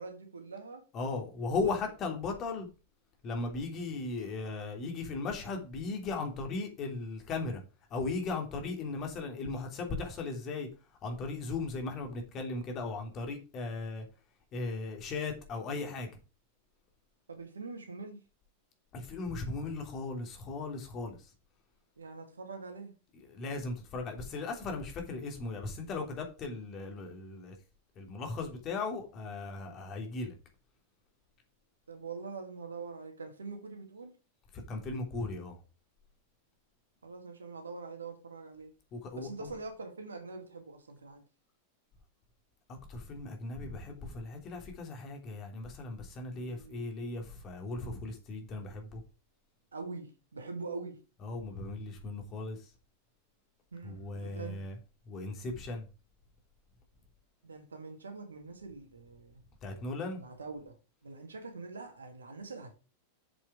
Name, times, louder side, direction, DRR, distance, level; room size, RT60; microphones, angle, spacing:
voice 1, 0.0-0.8 1.4-1.7 3.7-3.8 17.3-18.2 22.0-23.0 29.6-29.8 31.9-34.2 37.0-38.7 39.1-41.3 46.3-46.8 49.7-51.0 53.7-54.6 57.4-59.4 60.2-60.7 61.0-62.7, right 4 dB, 75° right, 2.2 m, -44 dB
voice 2, 0.9-2.7 3.2-7.6 7.9-10.7 11.0-14.0 14.5-16.1 18.9-21.3 23.3-27.6 28.0-30.3 34.7-35.6 38.9-39.5 42.9-49.0 51.2-52.6 53.8-54.7 55.1-55.8 59.6-60.2, left 3 dB, 30° left, 3.0 m, -37 dB
7.8 x 6.5 x 4.9 m
figure-of-eight pair, 90°, 0 cm